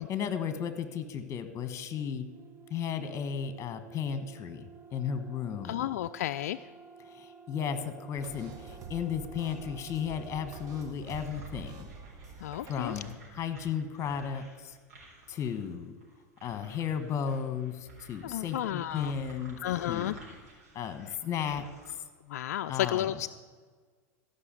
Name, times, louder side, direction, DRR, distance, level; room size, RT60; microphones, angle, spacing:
voice 1, 0.0-2.3 2.7-5.8 7.0-11.9 12.6-14.8 15.3-16.0 16.4-19.6 19.9-20.2 20.7-22.0 22.7-23.1, left 7 dB, 35° left, 10 dB, 1.4 m, -34 dB
sound 1, 1.9-11.0, right 6 dB, 25° right, 0.7 m, -52 dB
voice 2, 5.6-6.7 12.4-12.9 18.2-19.1 19.6-20.2 22.3-23.3, left 12 dB, 75° left, 10 dB, 0.3 m, -32 dB
sound 2, 8.1-13.1, right 4 dB, 40° right, 1.4 m, -47 dB
sound 3, 11.0-21.9, right 2 dB, 75° right, 3.9 m, -54 dB
14.0 x 5.8 x 7.6 m, 1.5 s
hypercardioid pair, 100°, 9 cm